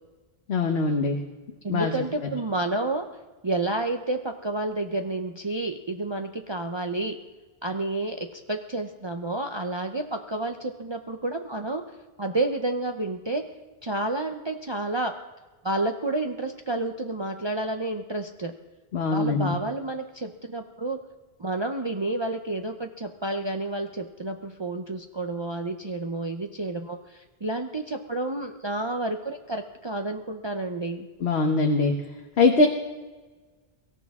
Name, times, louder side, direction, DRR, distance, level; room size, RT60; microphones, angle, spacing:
voice 1, 0.5-1.2 1.7-1.9 18.9-19.6 31.2-31.9 32.4-32.7, left 3 dB, 80° left, 3 dB, 1.4 m, -22 dB
voice 2, 1.6-3.1 3.4-7.2 7.6-11.8 12.2-13.4 13.8-15.1 15.6-18.5 19.1-21.0 21.4-31.1, right 2 dB, 30° right, 4 dB, 0.7 m, -30 dB
23.5 x 13.5 x 3.6 m, 1.3 s
omnidirectional pair, 1.0 m